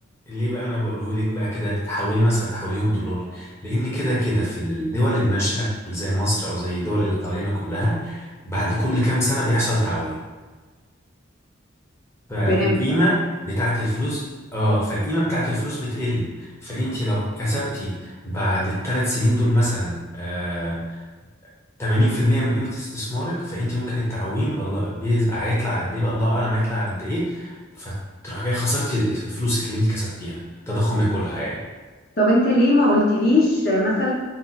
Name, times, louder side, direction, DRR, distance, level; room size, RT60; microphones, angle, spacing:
voice 1, 0.3-10.2 12.3-14.2 14.5-21.0 21.8-27.9 28.2-31.6, equal, 15° left, -8 dB, 0.6 m, -24 dB
voice 2, 12.5-12.8 32.2-34.1, left 1 dB, 50° left, -5 dB, 0.7 m, -18 dB
2.7 x 2.0 x 3.9 m, 1.3 s
head